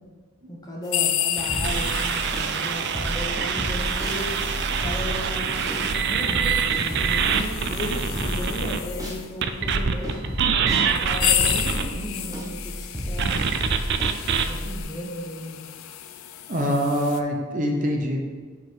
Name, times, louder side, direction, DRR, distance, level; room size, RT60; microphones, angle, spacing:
voice 1, 0.5-4.3 4.8-10.2 10.7-13.4 14.4-15.7, left 1 dB, 20° left, -2 dB, 1.0 m, -35 dB
sound 1, 0.9-9.3 10.1-10.2 10.8-17.2, left 11 dB, 80° left, 0.4 m, -32 dB
sound 2, 1.4-8.8 9.4-11.9 13.2-14.4, right 7 dB, 55° right, 0.4 m, -25 dB
sound 3, 1.5-2.5 2.9-9.2 9.6-14.8, equal, 15° right, 1.1 m, -32 dB
voice 2, 16.5-18.2, equal, 40° right, 0 dB, 0.8 m, -24 dB
5.5 x 5.2 x 4.5 m, 1.5 s
head